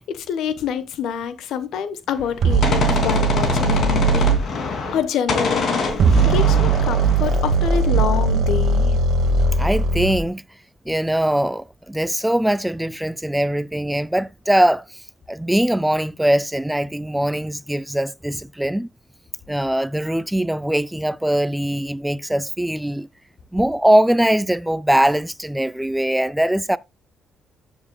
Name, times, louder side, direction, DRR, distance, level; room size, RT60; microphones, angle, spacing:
voice 1, 0.0-4.4 4.9-5.8 6.2-8.9, left 8 dB, 80° left, 1.1 m, -26 dB
Gunshot gunfire, 2.2-5.0 5.3-8.0, left 4 dB, 60° left, 2.8 m, -24 dB
sound 1, 2.4-4.4 5.9-10.2, right 4 dB, 65° right, 1.3 m, -19 dB
voice 2, 9.6-10.4 10.9-15.0 15.3-18.9 19.5-23.1 23.5-26.8, right 1 dB, 5° right, 0.4 m, -21 dB
14.5 x 7.1 x 2.3 m
cardioid pair, 90°, 0 cm